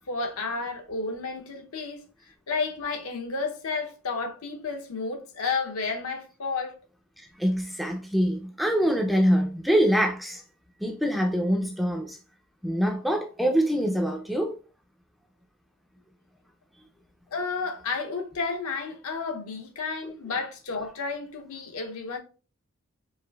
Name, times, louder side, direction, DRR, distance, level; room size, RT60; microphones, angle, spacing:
voice 1, 0.1-2.0 2.5-6.7 17.3-22.2, left 4 dB, 80° left, 0.7 m, -31 dB
voice 2, 7.2-10.4 10.8-12.2 12.6-14.6 20.0-20.1, equal, ahead, 0.3 m, -25 dB
4.8 x 2.4 x 2.3 m
head